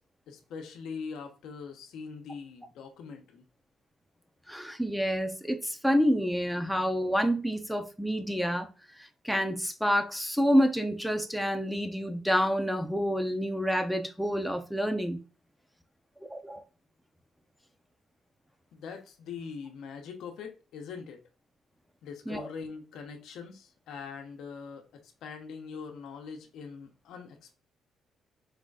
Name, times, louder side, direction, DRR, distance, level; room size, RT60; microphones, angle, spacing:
voice 1, 0.3-3.4 18.7-21.2 22.0-24.8 25.2-27.6, left 5 dB, 80° left, 0.9 m, -42 dB
voice 2, 4.5-8.7 9.0-15.2 16.3-16.6 22.3-22.5, equal, ahead, 0.7 m, -28 dB
4.9 x 3.9 x 2.4 m
cardioid pair, 90°, 0 cm